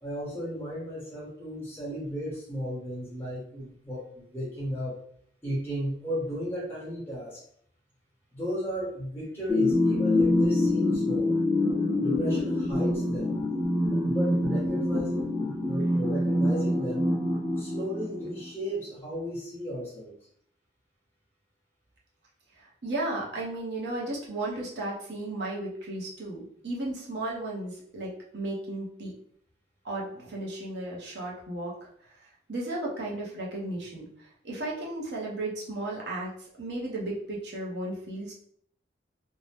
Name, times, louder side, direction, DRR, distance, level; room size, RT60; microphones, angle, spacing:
voice 1, 0.0-5.0 5.4-7.4 8.3-11.4 12.0-13.3 13.9-15.3 15.6-17.1 17.6-20.1, equal, 10° left, -7 dB, 1.2 m, -34 dB
sound 1, 9.5-18.5, left 1 dB, 5° right, 0.8 m, -26 dB
voice 2, 22.6-29.1 29.8-31.9 32.5-34.1 34.4-36.3 36.6-38.3, right 2 dB, 65° right, -3 dB, 0.8 m, -34 dB
2.7 x 2.1 x 3.2 m, 0.63 s
head